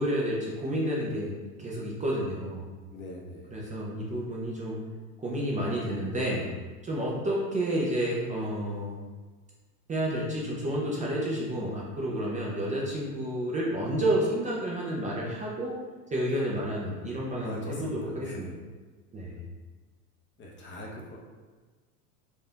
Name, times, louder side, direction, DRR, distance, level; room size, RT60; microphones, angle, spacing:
voice 1, 0.0-2.7 3.5-4.8 5.2-6.5 6.8-9.0 9.9-15.7 16.1-18.5 19.1-19.5, right 1 dB, 15° right, -5 dB, 0.6 m, -30 dB
voice 2, 2.9-3.6 16.3-16.7 17.4-18.5 20.4-21.2, left 1 dB, 25° left, -2 dB, 0.8 m, -42 dB
4.4 x 2.6 x 3.4 m, 1.4 s
hypercardioid pair, 110°, 45 cm